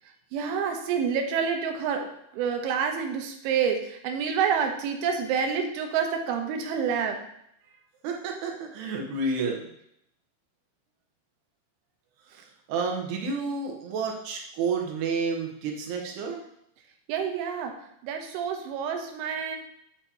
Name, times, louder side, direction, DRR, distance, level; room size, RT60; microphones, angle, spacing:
voice 1, 0.3-2.1 2.3-7.2 17.1-17.7 18.0-19.6, right 6 dB, 90° right, 4 dB, 3.4 m, -28 dB
voice 2, 8.0-9.7 12.7-16.4, right 4 dB, 70° right, 1 dB, 3.0 m, -30 dB
8.3 x 8.1 x 3.0 m, 0.74 s
omnidirectional pair, 5.4 m